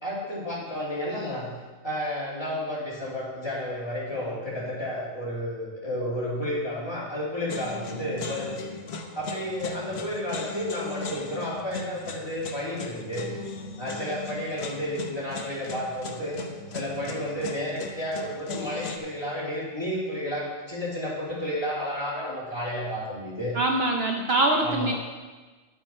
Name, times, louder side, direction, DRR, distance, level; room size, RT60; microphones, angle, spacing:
voice 1, 0.0-1.5 1.8-8.6 9.1-13.3 13.8-16.4 16.7-23.6 24.6-24.9, equal, 20° left, -7 dB, 2.8 m, -31 dB
sound 1, 7.5-19.0, left 3 dB, 60° left, 1.1 m, -38 dB
voice 2, 23.5-24.9, right 2 dB, 55° right, 2 dB, 1.0 m, -23 dB
10.5 x 8.6 x 4.4 m, 1.3 s
omnidirectional pair, 1.3 m